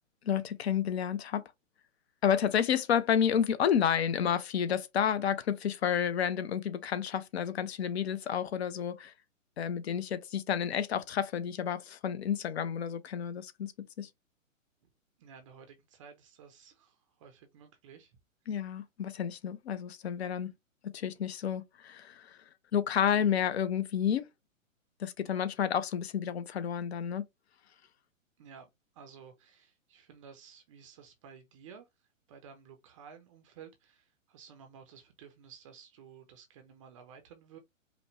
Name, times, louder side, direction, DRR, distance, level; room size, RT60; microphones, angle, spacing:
voice 1, 0.2-1.4 2.2-9.1 9.6-14.1 18.5-20.5 20.8-22.4 22.7-24.3 25.0-27.3, left 8 dB, 50° left, 0.7 m, -30 dB
voice 2, 15.2-18.2 18.5-18.6 28.4-37.6, right 7 dB, 25° right, 0.5 m, -54 dB
5.0 x 2.1 x 3.2 m
figure-of-eight pair, 125°, 40 cm